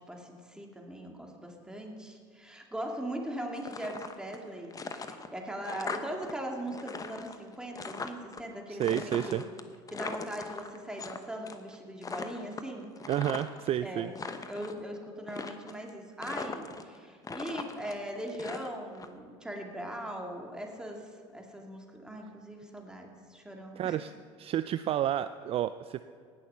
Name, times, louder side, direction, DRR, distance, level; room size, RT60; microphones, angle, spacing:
voice 1, 0.1-9.5 9.9-12.9 13.8-14.1 14.5-24.0, right 1 dB, 5° right, 1 dB, 2.3 m, -40 dB
sound 1, 3.5-4.4 4.7-6.3 6.6-8.4 8.8-11.2 11.5-11.7 12.0-13.7 14.0-14.8 15.3-15.9 16.2-17.0 17.2-19.1, left 4 dB, 25° left, 1.0 m, -40 dB
voice 2, 8.7-9.4 13.1-14.1 23.8-24.1 24.4-26.0, right 11 dB, 40° right, 13 dB, 0.4 m, -30 dB
18.5 x 6.4 x 5.7 m, 2.1 s
hypercardioid pair, 85°, 15 cm